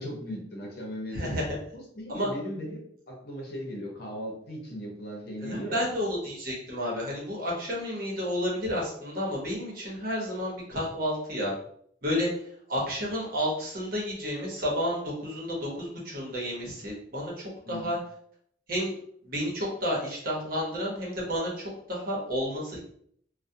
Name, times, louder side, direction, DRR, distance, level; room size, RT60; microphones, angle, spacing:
voice 1, 0.0-1.4 1.7-5.9 17.6-17.9, equal, 60° left, -1 dB, 0.8 m, -38 dB
voice 2, 1.1-1.6 2.1-2.3 5.4-11.5 12.0-12.3 12.7-18.0 18.7-18.9 19.2-22.8, equal, 55° right, -4 dB, 0.9 m, -31 dB
2.3 x 2.1 x 2.6 m, 0.65 s
head